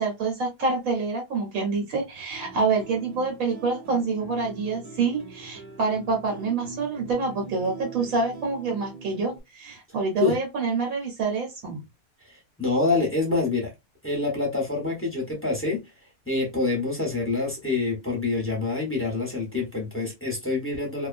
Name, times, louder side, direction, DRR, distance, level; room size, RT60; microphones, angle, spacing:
voice 1, 0.0-11.8, right 4 dB, 80° right, 1.3 m, -27 dB
sound 1, 2.3-9.4, right 3 dB, 40° right, 0.5 m, -43 dB
voice 2, 12.2-13.7 14.0-15.8 16.3-21.1, left 3 dB, 10° left, 0.8 m, -26 dB
2.5 x 2.2 x 2.4 m
omnidirectional pair, 1.5 m